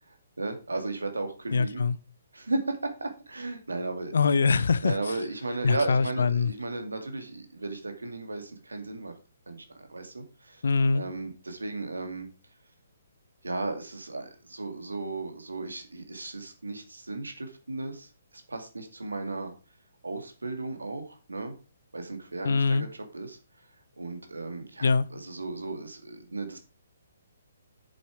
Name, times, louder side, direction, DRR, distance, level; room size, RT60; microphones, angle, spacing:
voice 1, 0.1-1.8 2.3-4.1 4.8-9.1 9.5-10.6 10.9-12.3 13.4-19.5 20.0-21.5 21.9-22.9 23.1-23.4 24.0-26.6, right 2 dB, 80° right, 2.3 m, -35 dB
voice 2, 1.5-2.0 4.1-5.0 5.6-6.5 10.6-11.0 22.4-22.8 24.8-25.1, left 4 dB, 60° left, 0.6 m, -23 dB
7.8 x 7.2 x 4.8 m
figure-of-eight pair, 130°, 0 cm